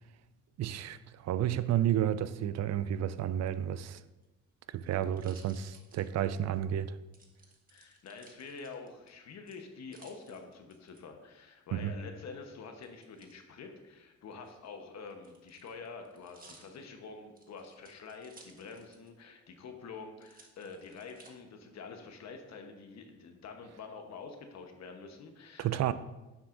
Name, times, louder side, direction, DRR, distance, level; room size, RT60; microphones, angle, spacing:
voice 1, 0.6-4.0 4.7-7.0 11.7-11.9 25.6-25.9, right 11 dB, 60° right, 0.5 m, -31 dB
sound 1, 4.1-6.6 7.1-9.1 9.5-11.0 12.8-13.4 14.3-19.2 19.5-19.6 20.2-21.3 21.9-22.5, right 3 dB, 30° right, 1.4 m, -60 dB
voice 2, 7.7-25.9, left 4 dB, 60° left, 1.0 m, -47 dB
9.1 x 7.4 x 2.6 m
cardioid pair, 90°, 30 cm